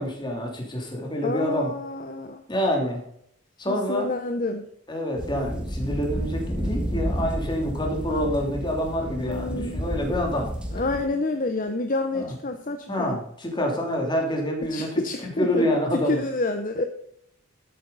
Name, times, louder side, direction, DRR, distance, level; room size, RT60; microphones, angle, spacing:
voice 1, 0.0-1.7 2.5-3.0 3.6-4.1 4.9-10.5 12.1-12.3 12.9-16.2, equal, 20° left, 1 dB, 3.0 m, -27 dB
voice 2, 1.2-2.4 3.7-4.7 9.2-9.8 10.7-13.2 14.7-16.8, left 2 dB, 35° left, 6 dB, 0.9 m, -28 dB
sound 1, 5.2-11.0, equal, 5° right, 1.7 m, -31 dB
13.0 x 9.0 x 4.0 m, 0.70 s
head